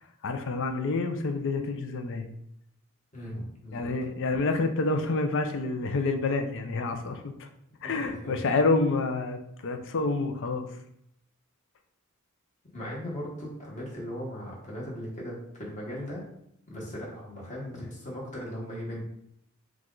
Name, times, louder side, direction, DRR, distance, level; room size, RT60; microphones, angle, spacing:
voice 1, 0.2-2.3 3.7-7.3 7.8-10.7, left 3 dB, 60° left, 6 dB, 0.5 m, -28 dB
voice 2, 3.1-3.9 7.8-8.4 12.7-16.2 16.7-19.0, equal, 35° left, -4 dB, 1.4 m, -38 dB
4.7 x 2.4 x 3.8 m, 0.74 s
head